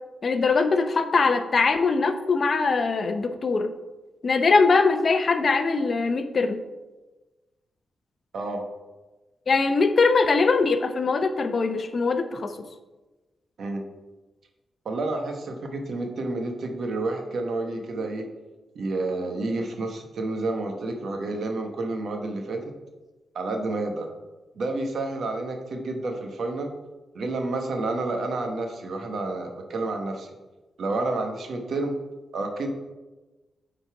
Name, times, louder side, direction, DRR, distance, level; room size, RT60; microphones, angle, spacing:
voice 1, 0.2-3.7 4.2-6.6 9.5-12.5, left 4 dB, 45° left, 9 dB, 0.6 m, -22 dB
voice 2, 14.8-18.3 18.7-22.7 23.3-24.1 24.5-26.7 27.1-30.3 30.8-31.9 32.3-32.7, right 2 dB, 65° right, 4 dB, 1.1 m, -29 dB
8.2 x 4.0 x 4.6 m, 1.2 s
cardioid pair, 90°, 0 cm